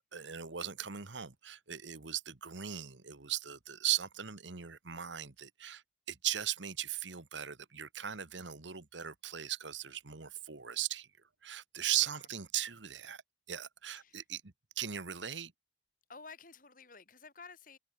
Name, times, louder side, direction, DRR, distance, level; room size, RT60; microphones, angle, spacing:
voice 1, 0.1-5.8 6.1-11.1 11.4-13.2 13.5-15.5, right 11 dB, 85° right, 1.5 m, -38 dB
voice 2, 13.8-14.2 16.1-17.8, left 4 dB, 45° left, 4.9 m, -53 dB
head